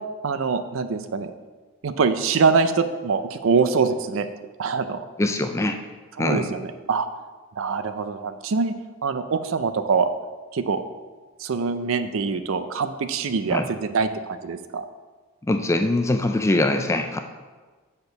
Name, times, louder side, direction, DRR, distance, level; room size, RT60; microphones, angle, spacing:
voice 1, 0.2-1.3 1.8-4.3 4.6-5.0 6.2-7.1 7.6-8.7 9.0-10.1 10.5-10.8 11.4-14.8, right 5 dB, 65° right, 10 dB, 0.4 m, -24 dB
voice 2, 5.2-5.8 6.2-6.5 13.5-13.7 15.4-17.2, left 2 dB, 15° left, 7 dB, 0.3 m, -22 dB
6.9 x 4.4 x 5.2 m, 1.3 s
head